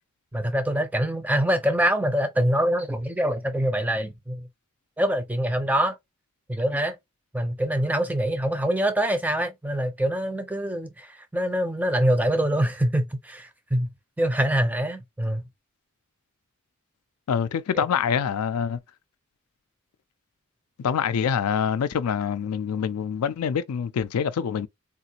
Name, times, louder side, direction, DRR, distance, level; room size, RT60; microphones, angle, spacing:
voice 1, 0.3-4.5 5.0-6.0 6.5-7.0 7.3-13.9 14.2-15.5 17.7-17.8, right 1 dB, 5° right, 0.4 m, -24 dB
voice 2, 17.3-18.8 20.8-24.7, left 7 dB, 85° left, 0.4 m, -25 dB
3.6 x 2.4 x 2.8 m
head